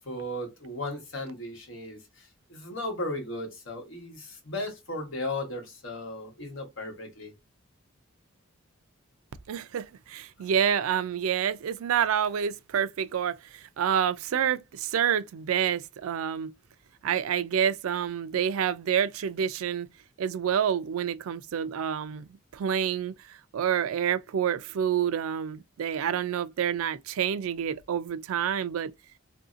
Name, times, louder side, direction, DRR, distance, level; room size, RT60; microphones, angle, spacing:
voice 1, 0.0-7.3, left 1 dB, 60° left, 1.2 m, -36 dB
voice 2, 9.5-16.5 17.0-19.9 20.2-28.9, right 8 dB, 80° right, 0.4 m, -28 dB
2.7 x 2.7 x 2.4 m
head